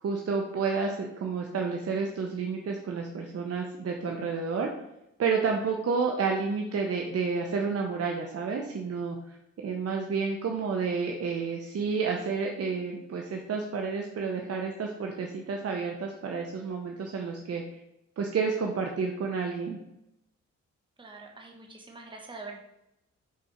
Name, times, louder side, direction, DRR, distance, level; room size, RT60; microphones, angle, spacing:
voice 1, 0.0-4.7 5.2-9.4 9.6-17.6 18.2-19.8, right 5 dB, 55° right, 1 dB, 0.8 m, -30 dB
voice 2, 21.0-22.6, right 3 dB, 15° right, 1 dB, 1.0 m, -44 dB
5.7 x 4.2 x 5.0 m, 0.86 s
cardioid pair, 110°, 30 cm